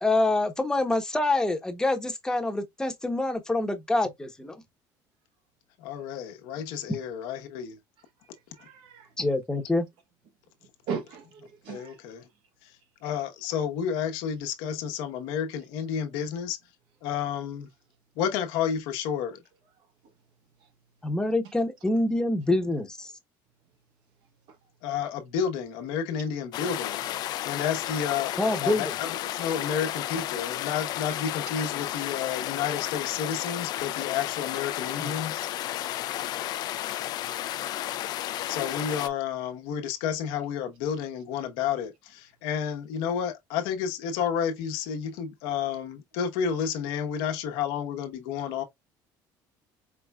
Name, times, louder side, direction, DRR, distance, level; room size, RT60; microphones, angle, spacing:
voice 1, 0.0-4.6 9.2-9.9 21.0-23.1 28.4-28.8 35.0-35.1, left 2 dB, 10° left, 0.9 m, -26 dB
voice 2, 5.8-7.8 11.7-12.3 12.6-16.6 17.0-17.7 18.2-19.4 24.8-35.5 38.5-48.6, left 8 dB, 85° left, 0.9 m, -31 dB
voice 3, 8.5-9.1 10.9-12.0 37.7-37.9, right 6 dB, 70° right, 1.2 m, -37 dB
sound 1, 26.5-39.1, left 13 dB, 55° left, 0.4 m, -32 dB
4.9 x 3.3 x 2.3 m
cardioid pair, 130°, 9 cm